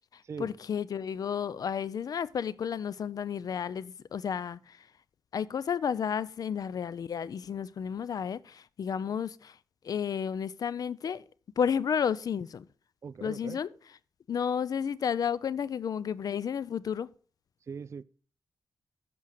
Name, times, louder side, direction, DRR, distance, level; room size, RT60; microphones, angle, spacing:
voice 1, 0.1-4.9 5.3-9.6 9.8-11.2 11.6-12.6 13.2-13.7 14.3-17.1, left 7 dB, 60° left, 0.4 m, -32 dB
voice 2, 13.0-13.6 17.7-18.0, right 6 dB, 40° right, 0.4 m, -40 dB
8.4 x 6.1 x 6.5 m
wide cardioid pair, 100°, 7 cm